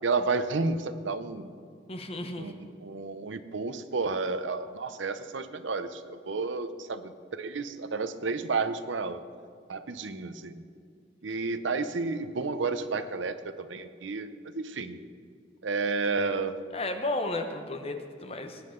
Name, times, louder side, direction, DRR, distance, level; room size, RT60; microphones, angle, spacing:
voice 1, 0.0-1.5 2.4-2.5 2.8-9.2 9.7-10.6 11.2-15.0 15.6-16.6, right 4 dB, 80° right, 11 dB, 0.7 m, -31 dB
voice 2, 1.9-2.5 16.7-18.6, left 2 dB, 30° left, 6 dB, 0.9 m, -33 dB
19.0 x 9.7 x 3.8 m, 2.2 s
head